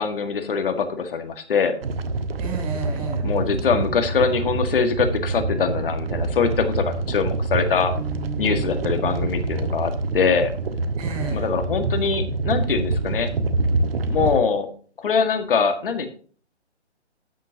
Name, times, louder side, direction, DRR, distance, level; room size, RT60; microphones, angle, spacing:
voice 1, 0.0-1.8 3.2-7.9 8.4-10.5 11.3-13.3 14.1-14.7 15.0-16.1, left 5 dB, 50° left, 7 dB, 1.8 m, -23 dB
sound 1, 1.8-14.4, right 3 dB, 55° right, 1.5 m, -26 dB
voice 2, 2.4-3.3 7.9-9.5 11.0-11.5, right 5 dB, 30° right, 3 dB, 4.9 m, -33 dB
13.0 x 9.2 x 2.8 m, 0.42 s
hypercardioid pair, 150°, 35 cm